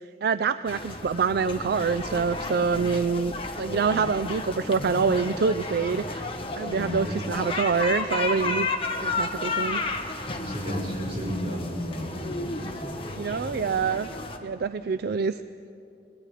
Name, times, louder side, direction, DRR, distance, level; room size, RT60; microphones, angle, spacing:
voice 1, 0.2-6.3 6.6-8.7 9.0-9.8 13.2-14.1 14.4-15.4, right 5 dB, 60° right, 12 dB, 0.4 m, -26 dB
sound 1, 0.7-14.4, left 2 dB, 30° left, 1.4 m, -33 dB
voice 2, 6.6-7.1 10.4-13.0 13.3-13.5, equal, 35° right, -3 dB, 6.3 m, -33 dB
26.0 x 20.5 x 5.0 m, 2.8 s
head